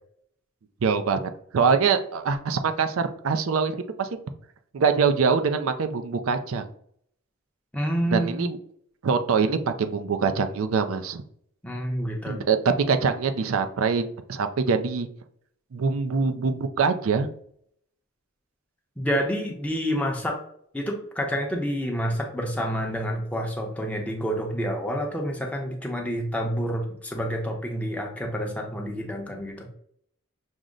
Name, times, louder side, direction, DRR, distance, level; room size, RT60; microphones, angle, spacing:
voice 1, 0.8-4.1 4.7-6.6 8.1-8.6 9.0-11.2 12.3-15.1 15.7-17.3, right 5 dB, 80° right, 8 dB, 0.4 m, -24 dB
voice 2, 7.7-8.5 11.6-12.4 19.0-20.4 20.7-29.7, equal, 5° left, 1 dB, 0.7 m, -28 dB
6.2 x 2.1 x 3.8 m, 0.66 s
head